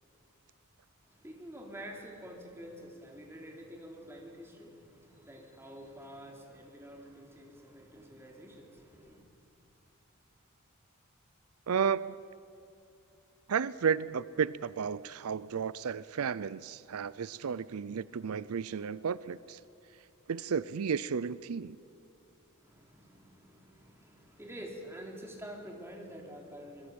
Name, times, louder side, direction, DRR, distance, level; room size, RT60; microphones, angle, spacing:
voice 1, 1.1-9.2 22.6-26.9, equal, 10° right, 3.8 m, -48 dB
voice 2, 11.7-12.1 13.5-19.6 20.3-21.8, right 6 dB, 85° right, 0.5 m, -33 dB
26.0 x 21.5 x 8.6 m
head